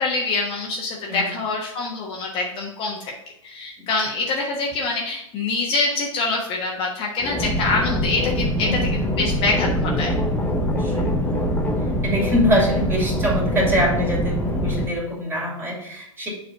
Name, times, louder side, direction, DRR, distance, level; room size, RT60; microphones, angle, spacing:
voice 1, 0.0-3.1 3.4-10.2, left 3 dB, 30° left, -1 dB, 1.3 m, -25 dB
sound 1, 7.2-14.9, equal, 10° left, 1.0 m, -23 dB
voice 2, 10.6-11.1 12.0-16.3, equal, 15° right, -3 dB, 2.8 m, -24 dB
7.1 x 4.1 x 5.2 m, 0.79 s
hypercardioid pair, 110°, 17 cm